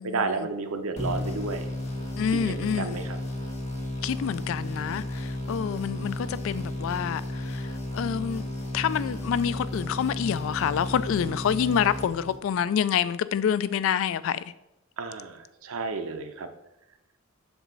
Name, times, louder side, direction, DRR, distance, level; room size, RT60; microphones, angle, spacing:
voice 1, 0.0-1.7 2.3-3.2 15.0-16.5, right 4 dB, 80° right, 0.7 m, -32 dB
sound 1, 1.0-12.7, left 1 dB, 35° left, 1.3 m, -33 dB
voice 2, 2.2-3.0 4.0-7.2 7.5-7.6 7.9-8.4 8.7-14.4, left 8 dB, 65° left, 0.3 m, -27 dB
6.3 x 4.7 x 3.9 m
head